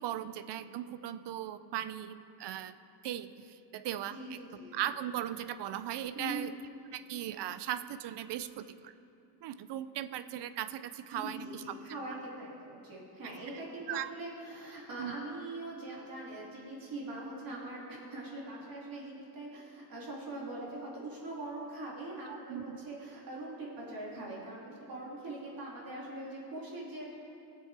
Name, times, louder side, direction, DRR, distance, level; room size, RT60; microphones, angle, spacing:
voice 1, 0.0-2.8 3.0-4.4 4.7-6.5 6.9-8.9 9.4-11.6 13.5-13.6 13.9-14.1 15.0-15.1 22.3-22.8, right 11 dB, 80° right, 13 dB, 0.5 m, -38 dB
voice 2, 4.1-4.9 6.1-6.5 11.1-27.1, right 2 dB, 55° right, -5 dB, 2.7 m, -42 dB
17.5 x 7.6 x 3.4 m, 2.7 s
cardioid pair, 135°, 40 cm